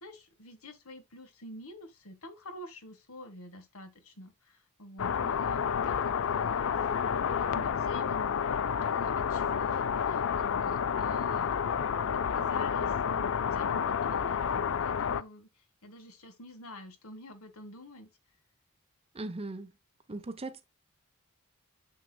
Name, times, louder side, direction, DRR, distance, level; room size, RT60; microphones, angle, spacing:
voice 1, 0.0-8.3 8.8-18.1, left 1 dB, 80° left, 1.6 m, -48 dB
sound 1, 5.0-15.2, left 7 dB, 65° left, 0.5 m, -30 dB
voice 2, 19.1-19.7 20.1-20.6, right 2 dB, 25° right, 0.7 m, -38 dB
9.4 x 6.4 x 2.3 m
head